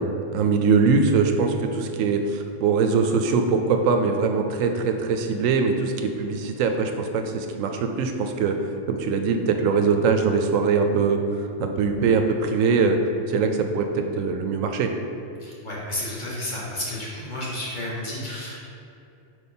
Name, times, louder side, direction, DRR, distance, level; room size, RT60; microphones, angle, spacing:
voice 1, 0.0-8.5 8.9-11.2 11.6-13.0 13.3-14.9, right 5 dB, 85° right, 5 dB, 1.0 m, -22 dB
voice 2, 15.4-18.6, left 1 dB, 40° left, -6 dB, 1.3 m, -31 dB
5.2 x 4.3 x 4.3 m, 2.6 s
omnidirectional pair, 1.3 m